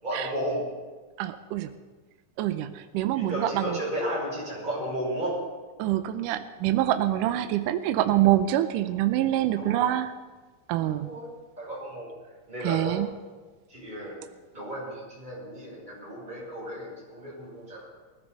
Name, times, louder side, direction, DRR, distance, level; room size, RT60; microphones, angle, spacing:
voice 1, 0.0-0.6 3.1-5.4 9.6-9.8 11.0-11.3 11.6-12.1 12.5-13.0 13.7-14.2 14.5-17.9, equal, 10° right, -5 dB, 6.7 m, -33 dB
voice 2, 1.2-1.7 2.4-3.8 5.8-10.1 10.7-11.1 12.6-13.1, right 13 dB, 80° right, 9 dB, 2.2 m, -25 dB
20.0 x 15.0 x 4.1 m, 1.4 s
omnidirectional pair, 4.0 m